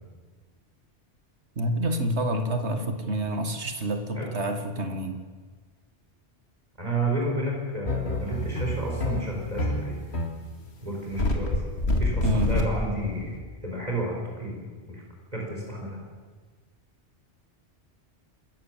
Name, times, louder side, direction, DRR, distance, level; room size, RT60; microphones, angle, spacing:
voice 1, 1.6-5.2 12.2-12.6, right 1 dB, 70° right, 7 dB, 2.2 m, -28 dB
voice 2, 6.8-10.0 10.8-14.6 14.8-15.0 15.3-16.0, right 1 dB, 35° right, -2 dB, 5.0 m, -31 dB
sound 1, 7.9-13.4, left 2 dB, 70° left, 2.5 m, -27 dB
27.5 x 14.0 x 7.5 m, 1.5 s
omnidirectional pair, 1.2 m